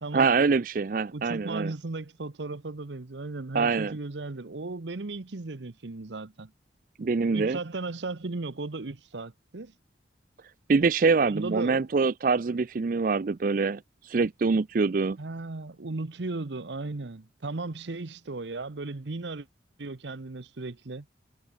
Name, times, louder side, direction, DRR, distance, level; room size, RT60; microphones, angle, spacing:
voice 1, 0.1-1.7 3.5-3.9 7.0-7.6 10.7-15.2, right 4 dB, 50° right, 0.4 m, -24 dB
voice 2, 1.1-6.5 7.3-9.7 11.2-11.9 15.2-19.5 19.8-21.1, right 3 dB, 75° right, 0.9 m, -36 dB
head